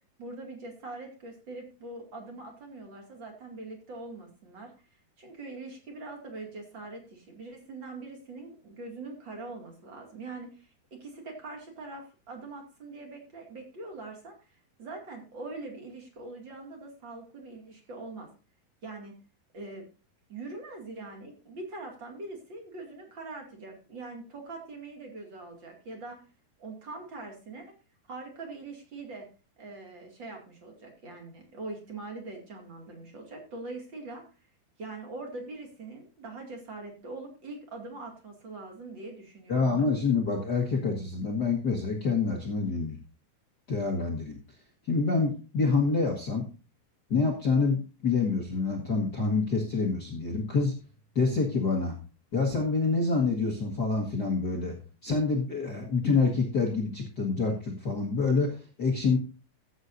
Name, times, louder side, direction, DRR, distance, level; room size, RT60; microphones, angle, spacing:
voice 1, 0.2-4.7 5.2-14.5 14.8-18.3 18.8-19.1 19.5-19.8 20.3-26.2 26.6-27.7 28.1-29.3 29.6-34.2 34.8-39.8, right 3 dB, 35° right, 2 dB, 2.4 m, -42 dB
voice 2, 39.5-43.0 43.7-44.4 44.8-46.5 47.1-50.7 51.1-51.9 52.3-54.8 55.0-59.2, left 4 dB, 65° left, -1 dB, 0.9 m, -27 dB
15.0 x 8.1 x 2.6 m, 0.34 s
omnidirectional pair, 4.4 m